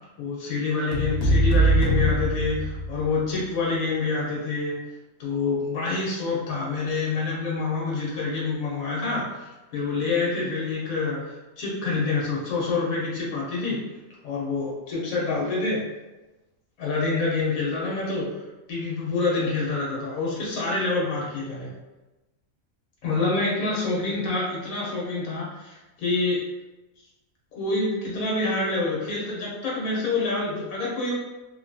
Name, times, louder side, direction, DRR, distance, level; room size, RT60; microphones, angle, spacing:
voice 1, 0.2-4.8 5.2-13.8 14.2-15.8 16.8-18.3 18.7-21.7 23.0-26.4 27.6-31.1, left 3 dB, 85° left, -5 dB, 1.2 m, -27 dB
sound 1, 0.9-3.2, right 1 dB, 60° left, 0.8 m, -22 dB
2.7 x 2.6 x 2.2 m, 1.1 s
omnidirectional pair, 1.4 m